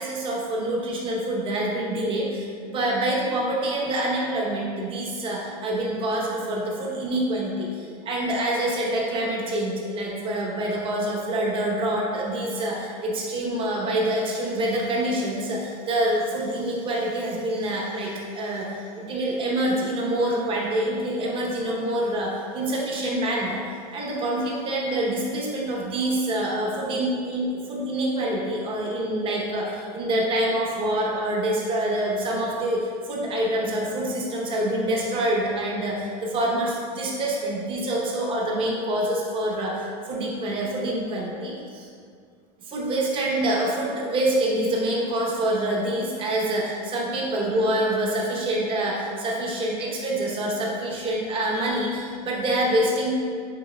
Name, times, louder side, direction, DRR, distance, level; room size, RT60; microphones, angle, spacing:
voice 1, 0.0-41.9 42.7-53.1, right 1 dB, 25° right, -3 dB, 0.8 m, -26 dB
6.8 x 3.2 x 2.2 m, 2.2 s
supercardioid pair, 145°, 20 cm